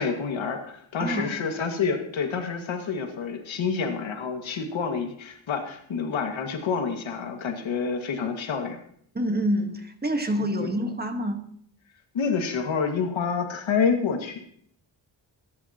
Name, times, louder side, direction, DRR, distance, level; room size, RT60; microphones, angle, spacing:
voice 1, 0.0-8.8 10.6-10.7 12.1-14.4, left 5 dB, 90° left, 4 dB, 2.0 m, -28 dB
voice 2, 1.0-1.3 9.1-11.5, equal, 20° right, 6 dB, 1.5 m, -27 dB
21.5 x 11.0 x 2.9 m, 0.65 s
wide cardioid pair, 105°, 46 cm